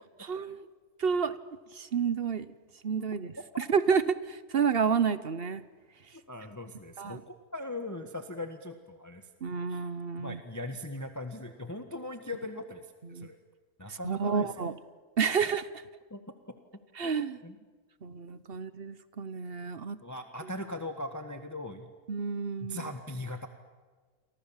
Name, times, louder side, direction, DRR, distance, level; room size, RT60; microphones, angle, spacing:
voice 1, 0.2-0.6 1.0-1.4 1.8-2.5 2.8-5.6 7.0-7.2 9.4-10.4 13.1-13.3 14.0-14.7 15.2-15.7 17.0-17.4 18.0-20.0 22.1-22.9, right 6 dB, 45° right, 15 dB, 1.0 m, -30 dB
voice 2, 6.3-9.8 10.2-12.9 13.1-13.4 13.8-14.5 16.1-16.2 17.0-17.1 17.4-17.6 20.0-21.9 22.6-23.5, left 1 dB, 10° left, 6 dB, 1.4 m, -40 dB
29.5 x 24.5 x 7.4 m, 1.4 s
omnidirectional pair, 1.6 m